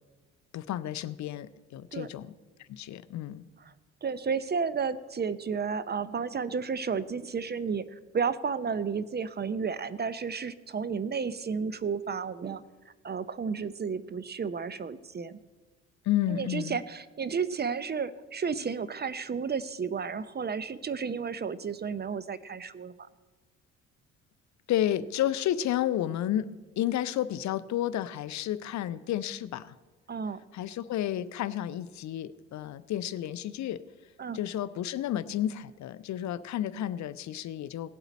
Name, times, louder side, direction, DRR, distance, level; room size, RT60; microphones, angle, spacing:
voice 1, 0.5-2.3 2.6-3.4 16.0-16.8 24.7-26.5 26.8-29.7 30.5-33.8 34.3-37.9, left 12 dB, 50° left, 15 dB, 0.6 m, -31 dB
voice 2, 4.0-15.4 16.3-23.1 30.1-30.4 34.2-34.4, right 6 dB, 30° right, 16 dB, 0.6 m, -32 dB
18.0 x 7.9 x 4.2 m, 1.3 s
hypercardioid pair, 55°, 35 cm